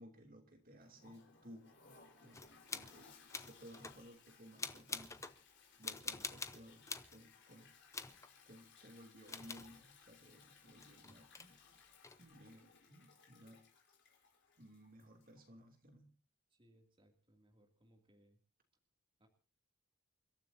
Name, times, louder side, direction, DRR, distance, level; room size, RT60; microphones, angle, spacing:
voice 1, 0.0-1.7 2.2-5.3 5.8-7.7 8.4-11.8 12.2-13.6 14.6-16.1, equal, 40° right, 4 dB, 2.8 m, -58 dB
Toilet flush, 0.8-15.4, left 5 dB, 50° left, 4.5 m, -64 dB
sound 1, 2.3-3.0 3.3-4.0 4.6-5.4 5.8-7.2 7.9-8.3 9.3-9.7 10.8-11.5 12.0-12.2, left 4 dB, 15° left, 0.8 m, -46 dB
voice 2, 16.5-18.4 19.2-19.3, equal, 25° right, 2 dB, 2.6 m, -69 dB
29.0 x 13.5 x 2.8 m, 0.37 s
head